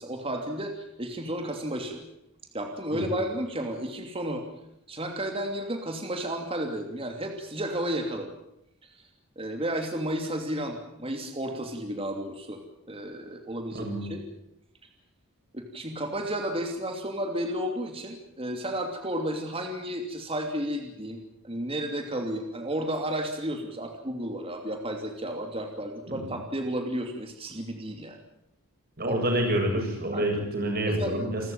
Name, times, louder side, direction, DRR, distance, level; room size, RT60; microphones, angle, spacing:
voice 1, 0.0-2.0 2.5-4.4 4.9-8.3 9.4-12.6 12.9-14.2 15.5-28.2 29.0-29.2 30.1-30.2 30.9-31.2, right 1 dB, 25° right, 4 dB, 2.9 m, -32 dB
voice 2, 13.7-14.1 26.1-26.3 29.0-31.4, right 1 dB, 45° right, 2 dB, 7.8 m, -28 dB
28.5 x 13.5 x 9.0 m, 0.80 s
head